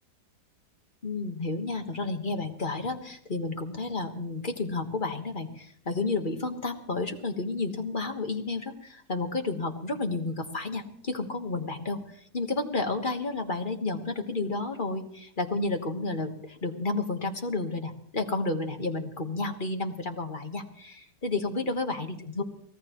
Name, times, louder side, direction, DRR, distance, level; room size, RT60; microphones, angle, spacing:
voice 1, 1.0-12.0 12.3-22.4, left 3 dB, 30° left, 5 dB, 1.4 m, -31 dB
24.5 x 17.5 x 3.0 m, 0.66 s
omnidirectional pair, 1.8 m